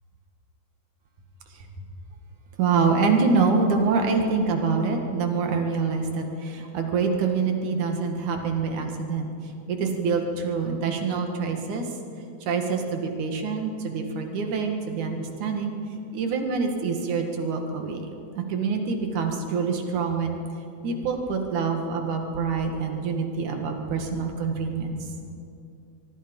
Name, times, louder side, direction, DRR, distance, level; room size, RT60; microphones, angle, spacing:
voice 1, 2.6-11.9 12.4-15.7 16.1-18.1 18.3-20.4 20.8-25.0, right 4 dB, 85° right, 4 dB, 3.4 m, -26 dB
24.0 x 23.0 x 5.4 m, 2.6 s
omnidirectional pair, 3.3 m